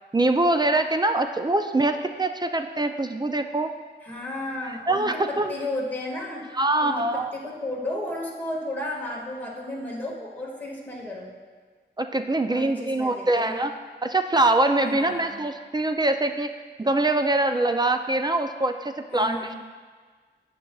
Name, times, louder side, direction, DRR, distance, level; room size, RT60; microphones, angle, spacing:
voice 1, 0.1-3.7 4.9-5.5 6.5-7.3 12.0-13.7 14.0-16.5 16.8-19.5, right 2 dB, 25° right, 7 dB, 0.4 m, -23 dB
voice 2, 4.0-6.5 6.8-11.3 12.4-13.6 14.8-15.4 19.1-19.6, left 1 dB, 10° left, -4 dB, 1.9 m, -33 dB
12.5 x 8.5 x 2.4 m, 1.5 s
wide cardioid pair, 110°, 19 cm